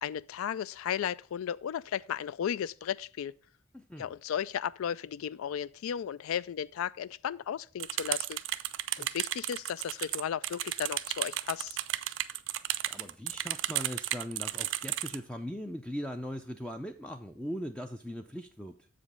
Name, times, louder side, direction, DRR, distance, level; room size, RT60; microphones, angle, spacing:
voice 1, 0.0-3.4 4.0-8.4 9.0-11.8, left 9 dB, 85° left, 0.3 m, -35 dB
voice 2, 3.7-4.1 9.0-9.1 12.8-18.9, equal, 5° left, 0.3 m, -40 dB
sound 1, 7.8-15.2, right 14 dB, 65° right, 0.4 m, -33 dB
7.4 x 5.0 x 5.5 m
head